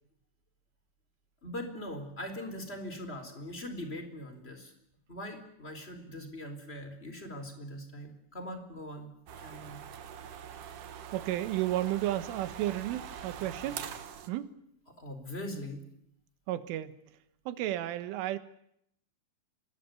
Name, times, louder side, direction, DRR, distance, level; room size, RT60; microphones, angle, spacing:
voice 1, 1.4-4.7 5.1-9.1 9.4-9.8 15.0-15.8, left 1 dB, 15° left, 7 dB, 3.7 m, -41 dB
sound 1, 9.3-14.3, right 9 dB, 60° right, 2.3 m, -43 dB
voice 2, 11.1-13.8 14.3-14.5 16.5-17.0 17.5-18.4, right 14 dB, 90° right, 12 dB, 3.8 m, -32 dB
25.5 x 21.0 x 9.4 m, 0.75 s
omnidirectional pair, 5.6 m